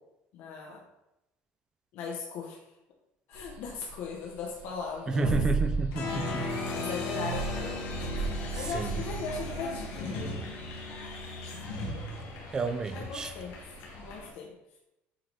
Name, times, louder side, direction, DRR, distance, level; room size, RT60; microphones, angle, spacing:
voice 1, 0.3-0.8 1.9-2.6 3.3-5.3 6.7-7.8 8.5-10.5 12.9-14.5, left 4 dB, 55° left, -1 dB, 0.9 m, -38 dB
sound 1, 3.3-14.2, right 4 dB, 80° right, 1.9 m, -36 dB
voice 2, 5.1-6.4 8.7-9.0 12.5-13.3, right 3 dB, 15° right, 8 dB, 0.4 m, -31 dB
Applause, 5.9-14.3, left 2 dB, 70° left, 1.5 m, -37 dB
7.6 x 3.3 x 3.9 m, 0.89 s
cardioid pair, 180°, 4 cm